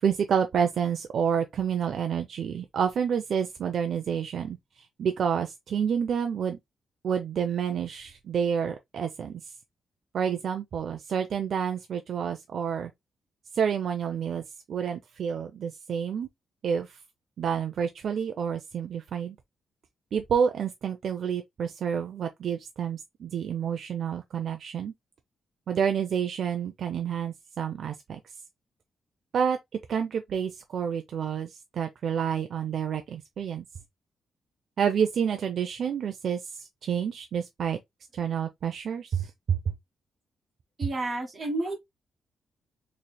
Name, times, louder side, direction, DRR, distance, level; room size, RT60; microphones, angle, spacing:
voice 1, 0.0-4.6 5.0-6.6 7.0-9.4 10.1-12.9 13.5-16.3 16.6-16.9 17.4-19.4 20.1-24.9 25.7-28.2 29.3-29.6 29.9-33.6 34.8-37.8 38.1-39.6, right 7 dB, 55° right, 0.4 m, -29 dB
voice 2, 40.8-41.8, right 2 dB, 30° right, 1.6 m, -30 dB
4.1 x 3.1 x 2.2 m
wide cardioid pair, 150°, 0 cm